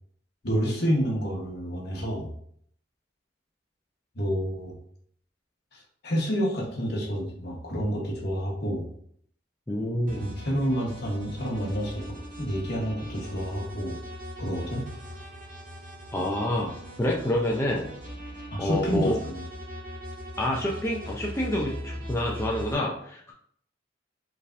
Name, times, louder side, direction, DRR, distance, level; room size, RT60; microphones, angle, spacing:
voice 1, 0.4-2.3 4.1-4.7 5.7-8.9 10.2-14.0 14.4-14.9 18.5-19.4, equal, 60° left, -1 dB, 1.2 m, -29 dB
voice 2, 9.7-10.2 16.1-16.7 17.0-17.9 18.6-19.2 20.4-23.3, left 1 dB, 15° left, -3 dB, 0.5 m, -27 dB
sound 1, 10.1-22.7, equal, 45° right, 1.6 m, -40 dB
4.9 x 3.4 x 2.6 m, 0.64 s
head